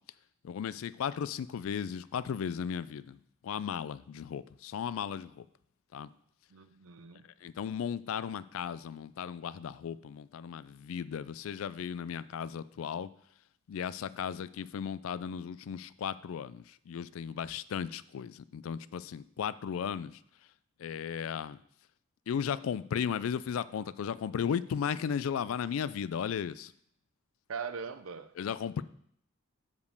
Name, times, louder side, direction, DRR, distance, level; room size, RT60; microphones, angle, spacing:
voice 1, 0.4-3.2 3.4-5.4 5.9-6.1 7.4-13.1 13.7-20.2 20.8-21.6 22.3-26.7 28.4-28.8, left 7 dB, 80° left, 17 dB, 0.3 m, -35 dB
voice 2, 6.5-7.3 27.5-28.3, right 6 dB, 85° right, 11 dB, 0.6 m, -40 dB
5.2 x 5.2 x 6.5 m, 0.68 s
head